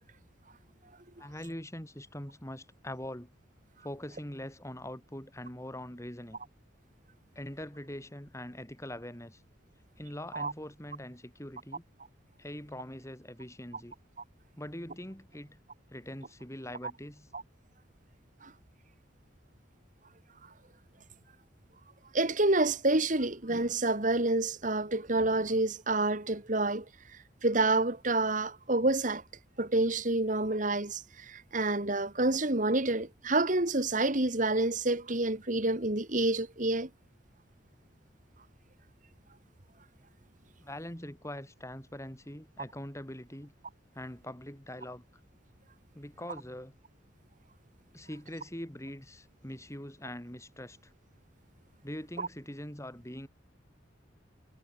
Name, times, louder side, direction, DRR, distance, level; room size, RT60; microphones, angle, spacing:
voice 1, 1.2-3.3 3.8-6.4 7.3-9.4 10.0-11.8 12.4-13.9 14.6-15.6 15.9-17.3 40.6-43.5 43.9-45.0 45.9-46.7 47.9-50.9 51.8-53.3, left 1 dB, 15° left, 4.7 m, -43 dB
voice 2, 22.1-26.8 27.4-29.2 29.6-36.9 52.2-52.3, right 2 dB, 45° right, 2.4 m, -28 dB
head